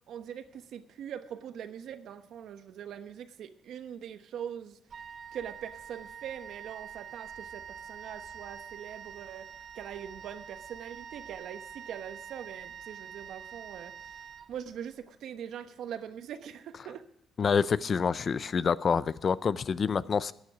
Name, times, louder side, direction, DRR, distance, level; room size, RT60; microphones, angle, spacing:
voice 1, 0.1-4.8 5.3-14.2 14.5-17.0, right 9 dB, 75° right, 10 dB, 1.0 m, -42 dB
Wind instrument woodwind instrument, 4.9-15.0, right 8 dB, 50° right, 0.7 m, -46 dB
voice 2, 17.4-20.3, left 6 dB, 45° left, 18 dB, 0.5 m, -27 dB
15.0 x 9.6 x 6.1 m, 0.78 s
cardioid pair, 90°, 0 cm